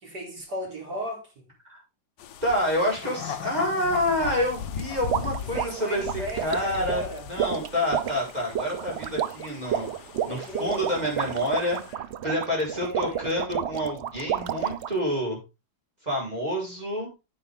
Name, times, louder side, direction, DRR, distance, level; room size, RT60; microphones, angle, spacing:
voice 1, 0.0-1.5 5.5-7.3 10.2-10.9 12.7-13.3, equal, 60° right, 4.3 m, -36 dB
sound 1, 2.2-11.9, left 7 dB, 70° left, 1.4 m, -40 dB
voice 2, 2.4-6.1 6.4-7.0 7.3-15.4 16.0-17.1, left 1 dB, 20° right, 5.1 m, -28 dB
sound 2, 2.9-6.3 6.6-6.7, left 8 dB, 85° left, 1.8 m, -38 dB
sound 3, 5.1-15.0, right 9 dB, 80° right, 0.5 m, -31 dB
9.8 x 8.6 x 3.7 m
omnidirectional pair, 2.0 m